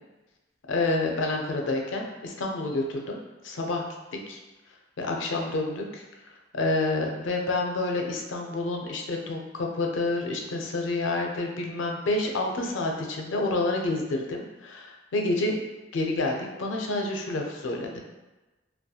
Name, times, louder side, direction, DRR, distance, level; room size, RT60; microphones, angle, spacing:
voice 1, 0.7-3.2 3.4-3.8 4.3-4.4 5.0-6.0 6.5-15.6 15.9-18.0, left 2 dB, 80° left, 1 dB, 0.4 m, -28 dB
2.7 x 2.2 x 2.2 m, 1.1 s
head